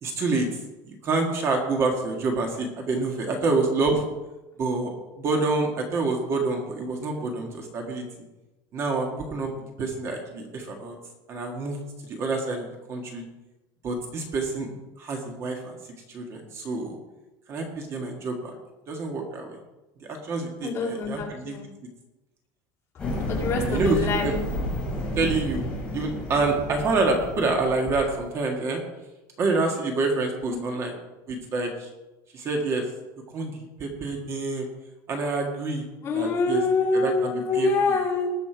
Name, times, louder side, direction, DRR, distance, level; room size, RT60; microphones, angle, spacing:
voice 1, 0.0-0.5 0.8-4.0 4.6-8.0 8.7-9.5 9.8-10.9 11.3-13.2 13.8-14.7 15.0-15.7 16.1-17.0 17.5-18.5 18.9-19.6 20.0-21.6 23.7-24.3 25.1-25.7 25.9-28.8 29.4-31.0 31.3-31.9 32.3-32.9 33.3-34.7 35.1-35.8 36.1-36.6 36.9-37.7, right 3 dB, 30° right, 2 dB, 1.7 m, -27 dB
voice 2, 20.6-21.6 23.3-24.3 36.0-38.3, left 3 dB, 30° left, -1 dB, 2.5 m, -25 dB
sound 1, 23.0-28.3, left 1 dB, 10° left, 3.7 m, -31 dB
19.5 x 7.0 x 4.6 m, 1.0 s
cardioid pair, 180°, 10 cm